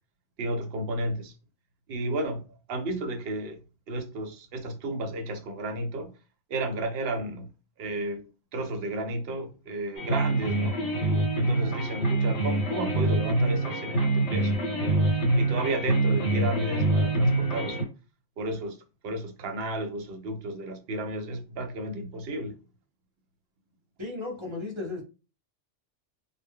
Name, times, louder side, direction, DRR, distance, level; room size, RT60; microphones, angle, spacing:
voice 1, 0.4-1.3 1.9-2.4 2.7-3.6 3.9-6.1 6.5-7.5 7.8-8.2 8.5-10.8 11.4-15.0 15.4-17.8 18.4-18.8 19.0-22.5, right 1 dB, 65° right, 0.7 m, -32 dB
sound 1, 10.0-17.8, right 2 dB, 70° left, 1.0 m, -25 dB
voice 2, 24.0-25.0, left 3 dB, 30° right, 0.7 m, -34 dB
2.1 x 2.1 x 3.4 m
omnidirectional pair, 1.3 m